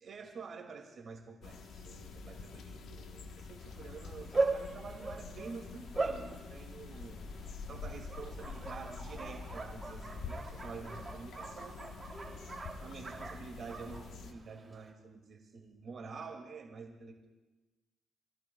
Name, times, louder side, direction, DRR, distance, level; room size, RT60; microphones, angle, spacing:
voice 1, 0.0-11.8 12.5-17.3, right 4 dB, 50° right, 1 dB, 2.4 m, -48 dB
sound 1, 1.4-14.3, left 4 dB, 70° left, 1.2 m, -46 dB
Bark, 3.6-14.9, right 3 dB, 25° right, 3.0 m, -40 dB
28.0 x 17.0 x 2.4 m, 1.1 s
cardioid pair, 90°, 0 cm